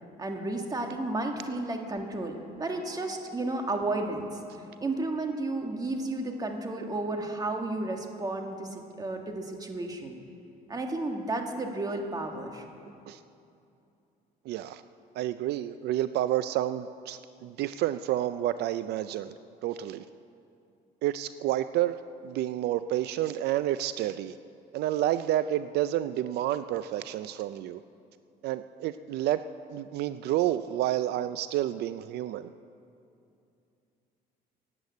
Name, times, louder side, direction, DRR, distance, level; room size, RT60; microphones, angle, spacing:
voice 1, 0.2-4.4 4.8-10.1 10.7-12.7, right 2 dB, 20° right, 3 dB, 1.9 m, -32 dB
voice 2, 14.5-14.8 15.2-19.3 19.6-20.0 21.0-24.3 24.7-27.8 28.4-29.4 29.7-32.5, right 13 dB, 75° right, 12 dB, 0.5 m, -29 dB
16.0 x 9.7 x 8.3 m, 2.7 s
cardioid pair, 110°, 17 cm